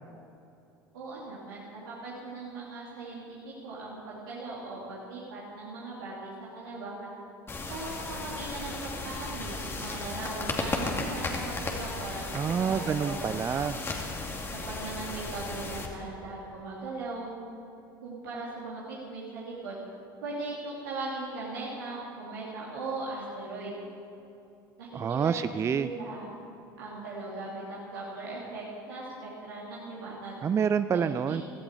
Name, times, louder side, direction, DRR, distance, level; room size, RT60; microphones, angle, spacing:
voice 1, 0.9-7.1 7.7-13.2 14.6-17.3 18.0-19.8 20.2-23.7 24.8-26.3 26.8-30.4 30.9-31.4, right 3 dB, 65° right, -6 dB, 2.9 m, -39 dB
sound 1, 7.5-15.9, left 3 dB, 20° left, 2.4 m, -35 dB
voice 2, 12.3-13.8 24.9-25.9 30.4-31.4, right 7 dB, 25° right, 13 dB, 0.4 m, -27 dB
17.0 x 15.0 x 4.8 m, 2.8 s
figure-of-eight pair, 75°, 12 cm